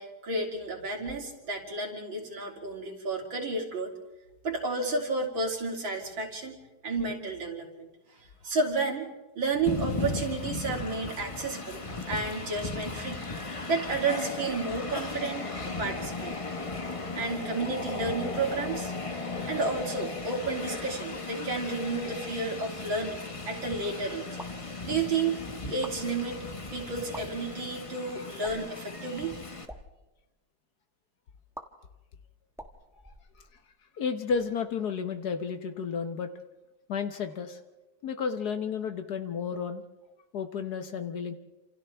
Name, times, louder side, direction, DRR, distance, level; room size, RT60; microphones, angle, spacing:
voice 1, 0.0-3.9 4.4-6.6 6.8-7.9 8.2-9.1 9.4-13.2 13.7-16.4 17.2-18.9 19.5-24.3 24.9-25.4 25.7-26.5 26.7-29.4, right 3 dB, 75° right, 1 dB, 3.7 m, -31 dB
Train, 9.7-29.7, left 3 dB, 25° left, 0.8 m, -36 dB
sound 1, 24.4-24.7 25.7-26.0 27.0-27.2 28.4-28.8 29.5-29.8 31.5-31.6 32.5-33.7, equal, ahead, 1.1 m, -45 dB
voice 2, 34.0-36.3 36.9-37.6 38.0-39.8 40.3-41.3, left 6 dB, 60° left, 8 dB, 1.3 m, -32 dB
29.0 x 27.5 x 3.4 m, 1.1 s
omnidirectional pair, 2.2 m